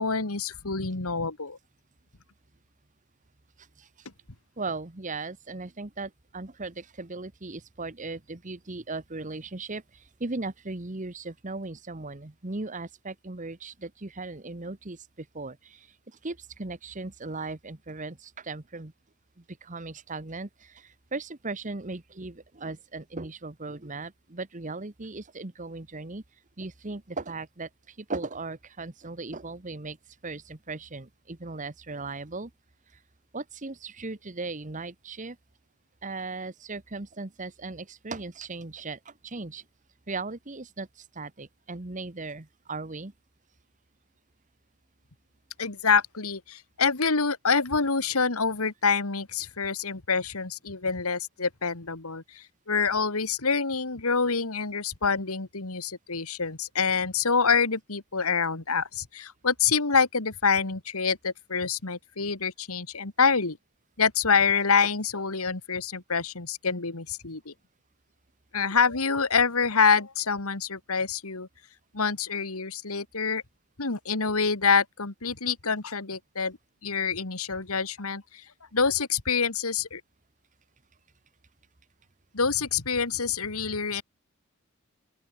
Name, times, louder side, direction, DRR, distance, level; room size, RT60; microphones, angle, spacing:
voice 1, 0.0-1.6 45.6-63.6 64.0-67.5 68.5-71.5 71.9-73.4 73.8-76.6 76.8-78.4 78.7-80.0 82.3-84.0, left 5 dB, 85° left, 2.1 m, -26 dB
voice 2, 4.6-15.9 16.2-18.9 19.6-26.2 26.6-30.0 30.2-32.5 33.3-35.4 36.0-39.6 40.1-43.1, right 3 dB, 35° right, 1.2 m, -37 dB
open air
head